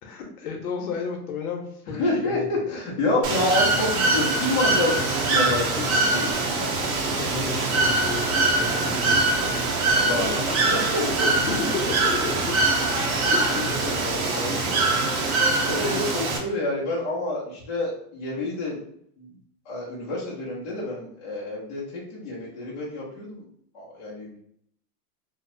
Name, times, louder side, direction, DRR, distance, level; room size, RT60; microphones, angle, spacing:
voice 1, 0.0-2.8 7.1-9.5 11.3-12.6 13.3-13.6 14.0-14.5 15.6-16.0, left 4 dB, 65° left, 2 dB, 0.7 m, -33 dB
voice 2, 2.0-6.3 9.9-11.3 14.0-14.8 15.6-18.8 19.2-19.3 19.7-23.4 23.7-24.4, left 2 dB, 25° left, -7 dB, 0.4 m, -28 dB
Bird / Water, 3.2-16.4, right 2 dB, 60° right, 0.6 m, -23 dB
sound 1, 6.3-14.2, equal, 15° right, 1.0 m, -39 dB
2.6 x 2.0 x 2.5 m, 0.68 s
supercardioid pair, 170°, 48 cm